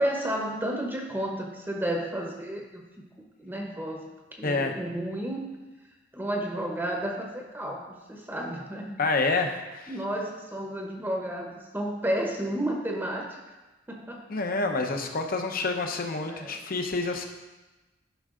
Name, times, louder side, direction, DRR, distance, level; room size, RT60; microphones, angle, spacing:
voice 1, 0.0-2.8 3.4-5.5 6.1-9.0 9.9-13.3 13.9-14.3 16.3-16.6, right 1 dB, 10° right, 0 dB, 0.9 m, -32 dB
voice 2, 4.4-4.7 9.0-9.9 14.3-17.2, left 3 dB, 50° left, 4 dB, 0.9 m, -28 dB
11.5 x 5.5 x 3.7 m, 1.1 s
head